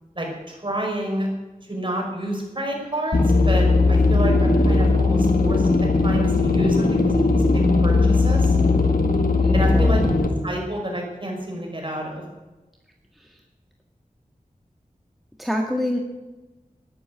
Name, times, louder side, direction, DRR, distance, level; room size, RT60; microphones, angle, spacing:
voice 1, 0.1-1.3 1.6-3.2 3.5-5.7 6.0-8.6 9.5-10.0 10.4-12.2, right 1 dB, 35° right, 0 dB, 5.5 m, -29 dB
sound 1, 3.1-10.3, left 3 dB, 80° left, 1.8 m, -18 dB
voice 2, 9.4-9.9 13.2-13.3 15.4-16.0, equal, ahead, 1 dB, 1.7 m, -25 dB
12.0 x 11.0 x 8.2 m, 1.1 s
wide cardioid pair, 55°, 15 cm